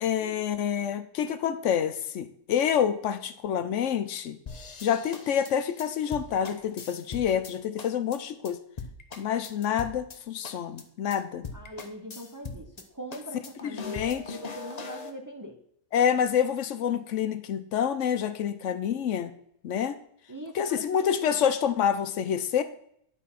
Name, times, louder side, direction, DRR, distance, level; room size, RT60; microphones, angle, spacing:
voice 1, 0.0-4.4 4.8-8.6 9.2-11.5 13.6-14.2 15.9-19.3 19.6-20.0 20.5-22.6, left 8 dB, 75° left, 11 dB, 1.0 m, -27 dB
sound 1, 4.5-7.5 7.8-8.2 8.4-8.5 8.8-10.2 10.4-10.8 11.1-11.2 11.4-12.8 13.1-15.1, left 4 dB, 35° left, 0.8 m, -41 dB
voice 2, 11.5-15.6 20.3-21.1, equal, 20° right, 3 dB, 0.8 m, -41 dB
10.5 x 4.1 x 5.7 m, 0.68 s
omnidirectional pair, 1.3 m